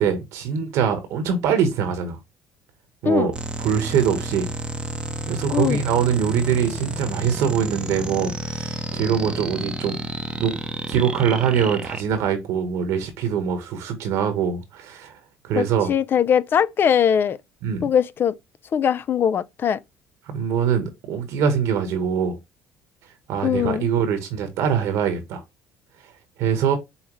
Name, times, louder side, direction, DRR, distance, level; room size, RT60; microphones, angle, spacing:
voice 1, 0.0-2.2 3.0-3.3 3.6-4.5 5.3-10.0 10.4-10.5 10.9-15.1 15.4-15.9 17.6-17.9 20.3-22.4 23.3-25.4 26.4-26.8, right 7 dB, 75° right, 1.1 m, -23 dB
sound 1, 3.3-12.0, right 2 dB, 20° right, 0.7 m, -31 dB
voice 2, 15.6-17.4 17.8-18.3 18.7-19.8 23.4-23.9, left 8 dB, 45° left, 0.4 m, -21 dB
5.5 x 2.2 x 3.1 m
supercardioid pair, 80°, 5 cm